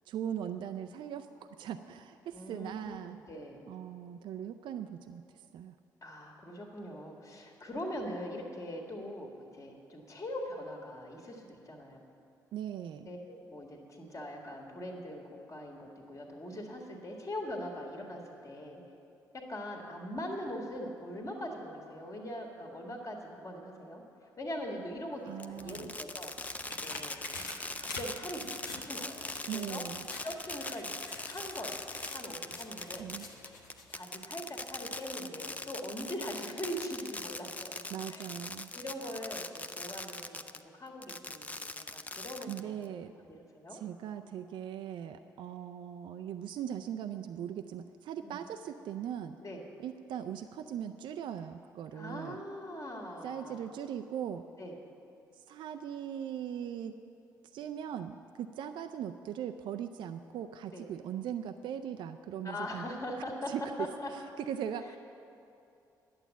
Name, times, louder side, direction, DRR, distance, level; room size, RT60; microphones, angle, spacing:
voice 1, 0.1-1.3 1.6-3.2 3.7-5.2 5.5-5.8 12.5-13.1 25.3-25.9 29.5-30.1 33.0-33.2 37.9-38.7 42.5-43.1 43.7-49.4 49.8-52.4 53.2-54.4 55.3-56.9 57.5-62.9 63.5-63.7 64.1-65.0, right 9 dB, 55° right, 7 dB, 0.4 m, -39 dB
voice 2, 2.3-3.7 6.0-12.0 13.0-15.2 15.5-18.8 19.3-24.0 24.4-26.3 26.8-27.2 27.8-29.9 30.2-31.0 31.2-33.1 33.9-37.8 38.1-38.3 38.7-40.4 40.7-42.8 43.2-43.8 48.2-48.4 49.4-49.6 51.9-53.7 54.6-54.8 60.7-60.9 62.4-64.1, equal, 35° left, 1 dB, 1.9 m, -41 dB
Fireworks, 25.4-40.6 41.0-42.9, left 2 dB, 15° left, 0.6 m, -41 dB
sound 1, 25.5-34.2 34.6-34.7, left 3 dB, 80° left, 0.9 m, -48 dB
11.0 x 8.0 x 9.0 m, 2.7 s
figure-of-eight pair, 40°, 10 cm